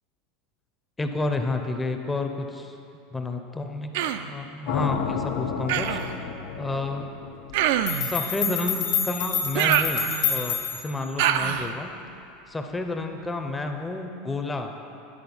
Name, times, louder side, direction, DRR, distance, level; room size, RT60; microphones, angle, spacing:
voice 1, 1.0-2.8 3.1-6.3 6.6-7.1 8.0-11.9 12.5-14.7, left 2 dB, 10° left, 5 dB, 0.5 m, -30 dB
Human voice, 3.9-4.3 5.7-6.1 7.5-8.1 9.5-10.4 11.2-11.7, right 10 dB, 75° right, 0.3 m, -25 dB
sound 1, 4.7-8.7, left 6 dB, 85° left, 0.6 m, -32 dB
sound 2, 7.5-7.6 7.9-11.0, left 7 dB, 65° left, 1.3 m, -28 dB
9.8 x 4.2 x 5.3 m, 2.7 s
supercardioid pair, 130°, 0 cm